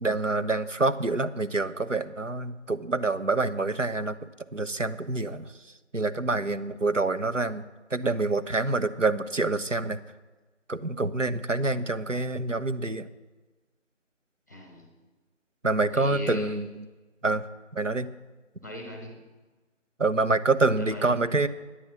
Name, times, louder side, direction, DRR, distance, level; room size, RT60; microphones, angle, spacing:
voice 1, 0.0-4.2 4.5-5.5 5.9-7.6 7.9-10.0 10.7-13.1 15.6-16.7 17.2-17.4 17.7-18.1 20.0-21.5, right 3 dB, 90° right, 11 dB, 1.1 m, -26 dB
voice 2, 14.5-14.9 15.9-16.6 18.6-19.3 20.8-21.3, equal, 15° left, 2 dB, 1.1 m, -38 dB
12.0 x 9.8 x 7.2 m, 1.3 s
figure-of-eight pair, 160°, 37 cm